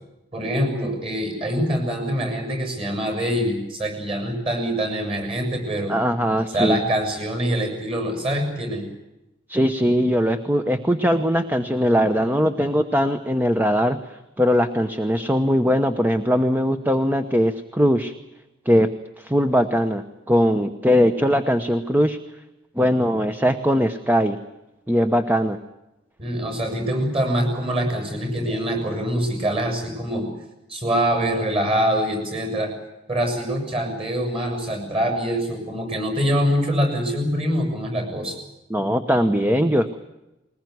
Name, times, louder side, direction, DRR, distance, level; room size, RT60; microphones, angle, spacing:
voice 1, 0.3-5.9 6.5-8.9 26.2-30.3 30.7-32.7 33.1-38.4, equal, 30° right, 5 dB, 7.1 m, -24 dB
voice 2, 5.9-6.8 9.5-18.1 18.6-18.9 19.2-22.2 22.8-24.4 24.9-25.6 38.7-40.0, equal, 10° right, 8 dB, 0.9 m, -20 dB
21.5 x 20.0 x 9.4 m, 0.96 s
head